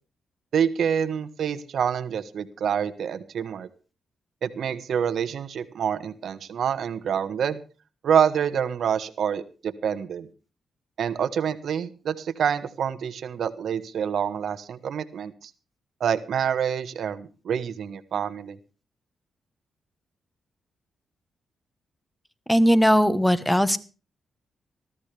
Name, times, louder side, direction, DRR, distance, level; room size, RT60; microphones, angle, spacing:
voice 1, 0.5-3.7 4.4-7.6 8.0-10.3 11.0-15.5 16.0-18.6, right 8 dB, 70° right, 11 dB, 1.4 m, -27 dB
voice 2, 22.5-23.8, equal, 5° left, 13 dB, 1.3 m, -19 dB
19.5 x 13.5 x 3.4 m, 0.35 s
cardioid pair, 85°, 0 cm